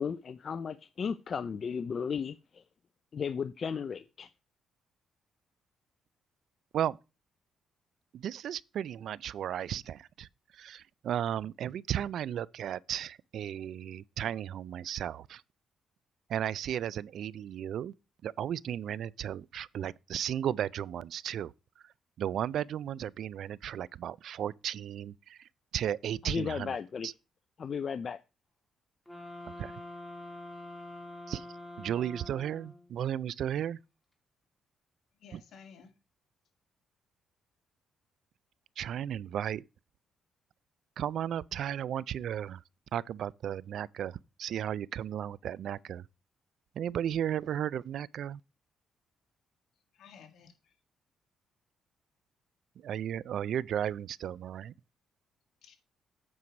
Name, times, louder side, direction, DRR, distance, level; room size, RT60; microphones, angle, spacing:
voice 1, 0.0-2.6 3.1-4.3 26.3-27.1 27.6-28.2, left 6 dB, 50° left, 0.4 m, -35 dB
voice 2, 8.1-10.3 10.5-15.4 16.3-17.9 18.2-21.5 21.8-21.9 22.2-26.8 27.0-27.1 29.5-29.7 31.3-31.5 31.8-33.8 38.8-39.6 41.0-42.6 42.9-46.1 46.8-48.4 52.8-54.7, right 10 dB, 70° right, 0.3 m, -34 dB
sound 1, 29.1-32.9, left 1 dB, 10° left, 2.5 m, -45 dB
voice 3, 35.1-36.0 49.7-50.8 55.6-55.7, left 6 dB, 70° left, 1.8 m, -55 dB
8.5 x 4.6 x 5.2 m
cardioid pair, 90°, 0 cm